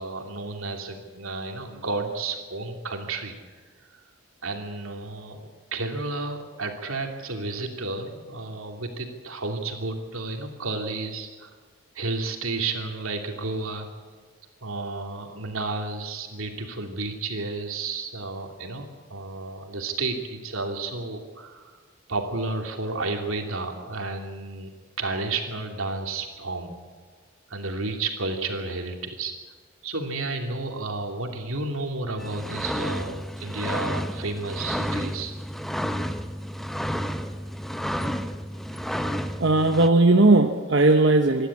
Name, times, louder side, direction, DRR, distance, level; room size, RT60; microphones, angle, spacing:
voice 1, 0.0-3.3 3.9-4.0 4.4-11.5 11.9-13.9 14.6-21.8 22.1-26.7 27.5-29.3 29.8-35.3, right 3 dB, 80° right, 3 dB, 2.8 m, -32 dB
sound 1, 32.2-39.9, equal, ahead, 0.7 m, -31 dB
voice 2, 39.4-41.5, right 2 dB, 60° right, 4 dB, 1.0 m, -18 dB
26.0 x 11.5 x 8.6 m, 1.4 s
head